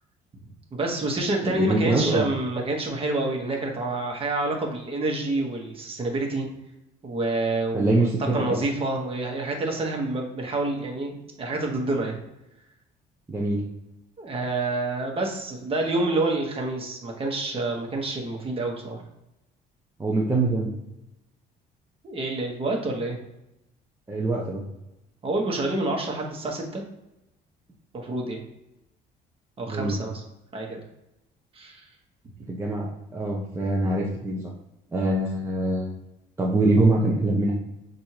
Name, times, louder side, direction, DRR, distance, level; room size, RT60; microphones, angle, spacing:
voice 1, 0.7-6.5 7.0-12.2 14.2-19.0 22.0-23.2 25.2-26.8 27.9-28.4 29.6-30.2 30.5-30.8 31.5-31.8, right 2 dB, 35° right, 1 dB, 1.1 m, -28 dB
voice 2, 1.4-2.3 7.7-8.6 13.3-13.6 20.0-20.7 24.1-24.6 29.7-30.0 32.5-34.4 34.9-35.9 36.4-37.5, right 2 dB, 15° right, -3 dB, 0.7 m, -24 dB
6.3 x 2.6 x 2.9 m, 0.90 s
cardioid pair, 110°, 17 cm